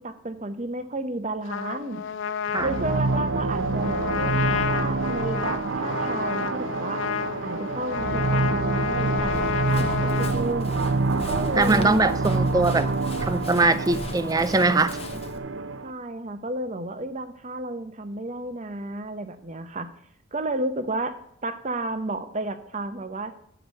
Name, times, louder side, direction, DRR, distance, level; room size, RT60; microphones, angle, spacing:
voice 1, 0.0-2.0 2.6-7.0 7.4-10.8 11.2-12.1 15.8-19.9 20.3-23.3, right 2 dB, 35° right, 10 dB, 0.8 m, -32 dB
Trumpet, 1.5-10.4, left 7 dB, 70° left, 0.5 m, -30 dB
sound 1, 2.6-15.9, right 3 dB, 75° right, 0.7 m, -27 dB
Run, 9.2-15.4, left 1 dB, 30° left, 0.8 m, -38 dB
voice 2, 11.6-12.9 13.2-15.0, right 3 dB, 20° right, 14 dB, 0.4 m, -21 dB
8.0 x 4.9 x 6.5 m, 0.71 s
head